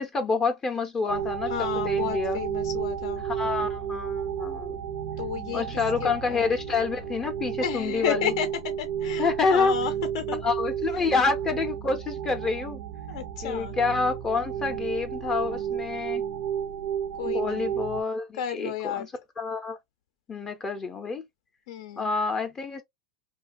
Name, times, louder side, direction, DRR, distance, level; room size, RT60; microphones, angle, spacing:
voice 1, 0.0-2.4 3.2-4.8 5.5-8.3 9.2-9.8 10.4-12.8 13.4-16.2 17.3-19.1 19.4-19.8 20.3-21.2 22.0-22.8, left 4 dB, 20° left, 0.5 m, -28 dB
sound 1, 1.1-18.0, right 9 dB, 80° right, 0.6 m, -32 dB
voice 2, 1.5-3.2 5.2-5.6 6.0-6.5 7.6-8.5 8.8-10.4 10.9-11.1 13.1-13.7 17.2-17.6 18.4-19.1 21.7-22.1, left 9 dB, 70° left, 0.5 m, -32 dB
2.7 x 2.2 x 2.5 m
supercardioid pair, 135°, 3 cm